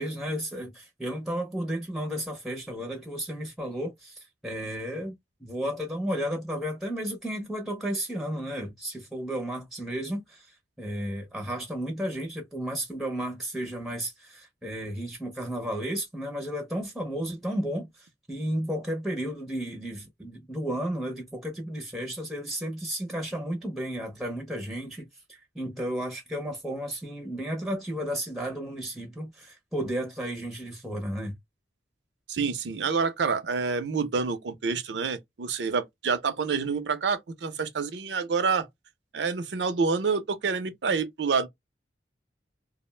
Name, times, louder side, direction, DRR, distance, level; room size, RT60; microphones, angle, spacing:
voice 1, 0.0-31.3, equal, ahead, 0.5 m, -33 dB
voice 2, 32.3-38.7 39.1-41.5, right 5 dB, 75° right, 0.5 m, -27 dB
2.4 x 2.1 x 3.1 m
head